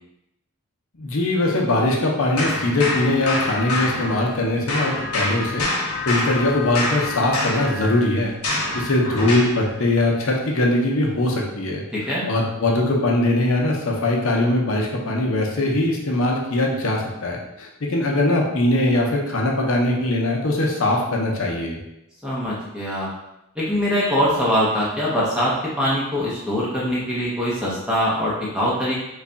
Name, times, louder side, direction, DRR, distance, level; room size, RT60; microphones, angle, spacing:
voice 1, 1.0-5.7 6.1-11.8 12.3-21.8, left 1 dB, 65° left, -1 dB, 0.7 m, -21 dB
sound 1, 2.4-4.4 4.7-9.6, left 2 dB, 80° left, 1.1 m, -26 dB
voice 2, 11.9-12.2 22.2-23.1 23.6-28.9, equal, 5° right, -7 dB, 0.6 m, -23 dB
3.2 x 2.3 x 3.8 m, 0.89 s
head